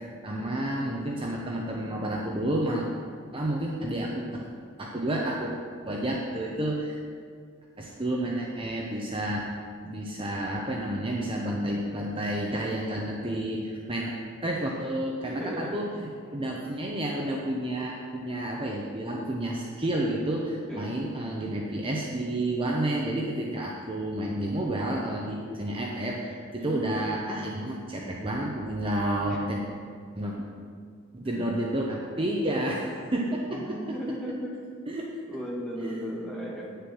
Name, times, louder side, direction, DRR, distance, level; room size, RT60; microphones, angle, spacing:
voice 1, 0.0-2.9 3.3-4.4 4.8-5.5 5.8-7.0 7.8-9.5 9.8-14.2 14.4-29.6 30.1-30.3 31.1-33.8 34.9-35.2 35.8-36.1, right 1 dB, 25° right, -2 dB, 0.8 m, -30 dB
voice 2, 15.2-15.8 20.7-21.0 26.6-26.8 29.3-29.4 31.2-31.4 33.5-34.6 35.3-36.7, equal, 5° left, -4 dB, 1.6 m, -36 dB
9.7 x 6.7 x 6.2 m, 2.1 s
head